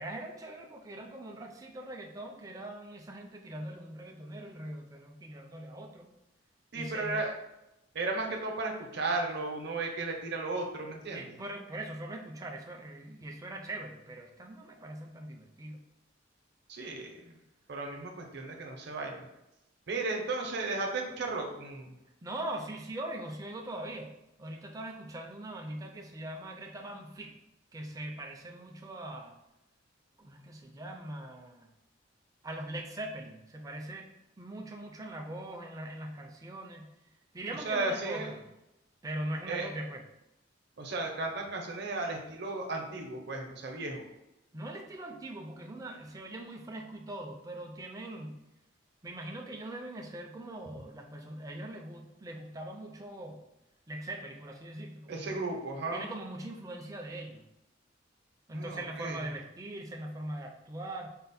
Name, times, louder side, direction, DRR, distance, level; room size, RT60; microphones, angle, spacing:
voice 1, 0.0-6.1 6.7-7.2 11.1-15.8 22.2-24.1 24.4-27.3 27.7-29.4 30.2-31.7 32.4-34.1 34.4-36.9 37.3-38.4 39.0-40.0 44.5-48.4 49.0-53.4 53.9-55.5 55.9-57.4 58.5-61.1, right 1 dB, 20° right, 2 dB, 0.4 m, -41 dB
voice 2, 6.7-7.3 7.9-11.2 16.7-17.4 17.7-19.3 19.9-21.9 37.6-38.3 39.5-39.7 40.8-44.0 55.1-56.1 58.5-59.2, right 3 dB, 60° right, 2 dB, 0.7 m, -35 dB
4.3 x 2.1 x 4.0 m, 0.90 s
head